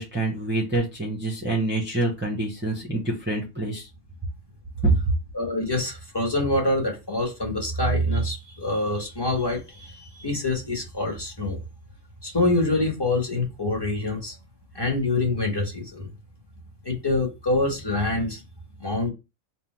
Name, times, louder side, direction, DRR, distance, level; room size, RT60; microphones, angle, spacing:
voice 1, 0.0-3.9 4.8-5.0, right 2 dB, 10° right, -2 dB, 0.9 m, -26 dB
voice 2, 5.3-11.6 12.2-14.3 14.7-16.1 16.8-18.4 18.8-19.1, left 2 dB, 20° left, -1 dB, 1.5 m, -25 dB
3.8 x 2.7 x 4.3 m, 0.26 s
omnidirectional pair, 1.3 m